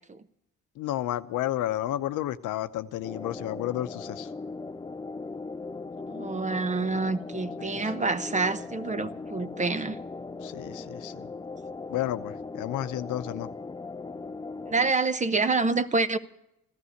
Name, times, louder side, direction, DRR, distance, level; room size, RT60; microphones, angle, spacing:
voice 1, 0.8-4.3 7.6-7.8 10.4-11.3 11.9-13.5, left 13 dB, 90° left, 0.8 m, -31 dB
sound 1, 3.0-14.9, left 3 dB, 15° left, 0.4 m, -39 dB
voice 2, 6.1-10.0 14.7-16.2, right 3 dB, 25° right, 0.9 m, -27 dB
15.5 x 12.5 x 6.5 m
cardioid pair, 90°, 30 cm